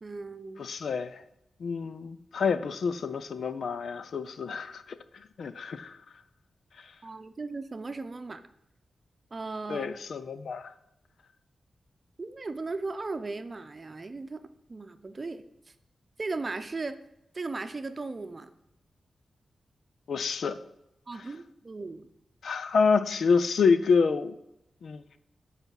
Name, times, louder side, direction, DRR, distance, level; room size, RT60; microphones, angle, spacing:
voice 1, 0.0-0.6 7.0-8.4 9.3-9.9 12.2-15.5 16.2-17.0 17.3-18.5 21.1-22.1, right 3 dB, 35° right, 0.7 m, -37 dB
voice 2, 0.6-1.2 1.6-5.0 5.4-5.9 9.7-10.7 20.1-20.6 22.4-24.3 24.8-25.0, left 5 dB, 80° left, 0.6 m, -27 dB
8.0 x 5.8 x 7.5 m
wide cardioid pair, 100°, 0 cm